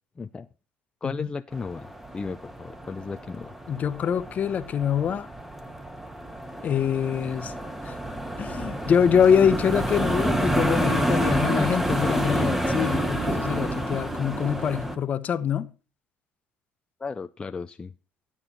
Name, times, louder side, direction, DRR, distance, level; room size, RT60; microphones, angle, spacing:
voice 1, 0.2-0.5 1.0-3.5 17.0-17.9, left 4 dB, 25° left, 0.5 m, -35 dB
sound 1, 1.5-15.0, right 1 dB, 10° right, 1.5 m, -28 dB
voice 2, 3.7-5.3 6.6-7.5 7.8-8.0 8.4-15.7, left 7 dB, 45° left, 0.9 m, -24 dB
13.0 x 8.7 x 4.2 m
cardioid pair, 100°, 4 cm